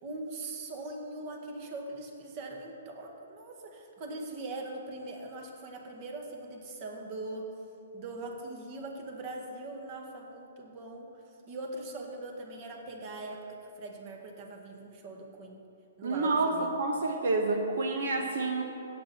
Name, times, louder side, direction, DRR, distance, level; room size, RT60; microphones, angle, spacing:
voice 1, 0.0-7.5 7.9-11.1 11.5-13.4 13.8-15.6 16.0-16.7, right 2 dB, 35° right, 2 dB, 1.8 m, -41 dB
voice 2, 16.0-16.5 16.8-18.6, right 3 dB, 70° right, 3 dB, 1.2 m, -28 dB
16.5 x 8.3 x 4.4 m, 2.7 s
hypercardioid pair, 150°, 0 cm